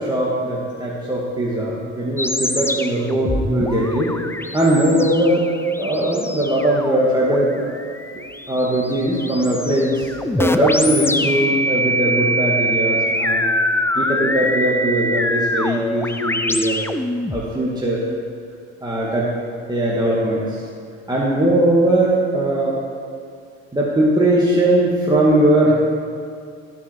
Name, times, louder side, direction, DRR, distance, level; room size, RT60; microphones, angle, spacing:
voice 1, 0.0-4.1 4.5-5.5 5.8-7.7 8.5-13.6 13.9-16.8 17.3-18.0 18.8-19.3 19.7-20.6 21.1-22.8 23.7-25.7, right 1 dB, 10° right, -6 dB, 2.3 m, -19 dB
sound 1, 2.2-17.5, equal, 5° left, 0.6 m, -24 dB
17.0 x 6.1 x 4.7 m, 2.3 s
hypercardioid pair, 65°, 35 cm